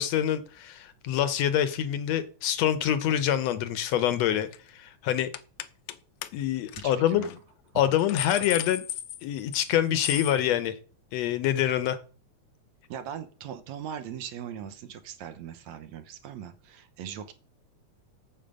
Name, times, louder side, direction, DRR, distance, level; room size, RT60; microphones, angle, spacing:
voice 1, 0.0-5.3 6.3-7.4 7.8-8.9 9.2-10.8 11.1-12.0, left 10 dB, 75° left, 12 dB, 1.8 m, -26 dB
sound 1, 3.9-4.1 4.4-4.7 5.3-6.0 6.2-6.3 6.7-6.8 7.2-7.4 7.8-9.7 10.0-10.4, left 13 dB, 90° left, 2.0 m, -35 dB
voice 2, 6.8-7.3 12.9-17.3, right 9 dB, 75° right, 10 dB, 2.2 m, -40 dB
8.9 x 7.4 x 5.2 m, 0.38 s
omnidirectional pair, 3.3 m